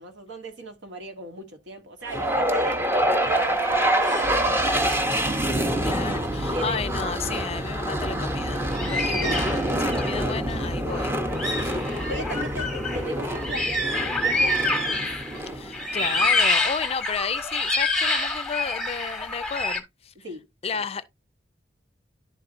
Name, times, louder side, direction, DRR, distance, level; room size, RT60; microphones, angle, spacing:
voice 1, 0.0-5.2 6.5-6.8 9.1-9.4 12.1-15.1 20.2-20.5 20.7-20.8, right 1 dB, 80° right, 1.3 m, -37 dB
sound 1, 2.1-16.3, right 1 dB, 15° right, 0.7 m, -26 dB
sound 2, 4.0-4.3 4.6-4.8 5.7-5.8 8.7-10.2 10.9-11.0 11.3-15.4 15.7-19.8, left 2 dB, 5° left, 1.0 m, -27 dB
voice 2, 5.8-11.2 11.5-11.8 15.5-20.1 20.6-21.0, left 5 dB, 35° left, 0.4 m, -32 dB
11.0 x 4.2 x 2.5 m
head